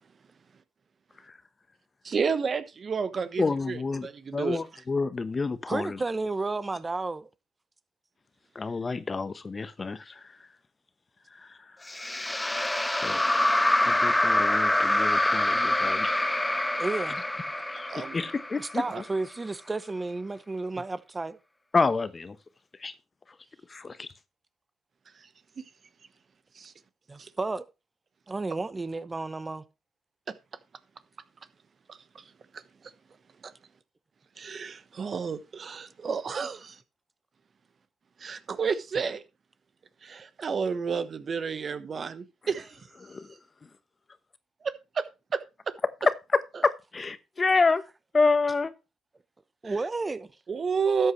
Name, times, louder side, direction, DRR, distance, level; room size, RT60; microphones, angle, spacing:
voice 1, 2.0-4.6 17.9-18.2 18.9-19.0 26.6-26.7 31.9-32.0 33.4-33.5 34.4-36.8 38.2-39.2 40.0-42.8 44.9-45.0 50.5-51.1, right 5 dB, 50° right, 1.1 m, -30 dB
voice 2, 3.4-6.0 8.5-10.3 11.4-11.6 12.1-12.2 13.0-13.2 13.8-16.4 17.7-18.8 21.7-22.3 22.8-22.9 23.7-24.1 43.0-43.3 46.3-47.8 48.1-48.7, left 4 dB, 35° left, 1.1 m, -28 dB
voice 3, 5.7-7.3 16.8-17.2 18.6-21.4 27.1-27.6 28.3-29.6 49.6-50.3, right 3 dB, 25° right, 1.0 m, -32 dB
sound 1, 11.9-19.2, left 1 dB, 10° left, 1.1 m, -26 dB
13.0 x 7.9 x 3.2 m
supercardioid pair, 55°, 0 cm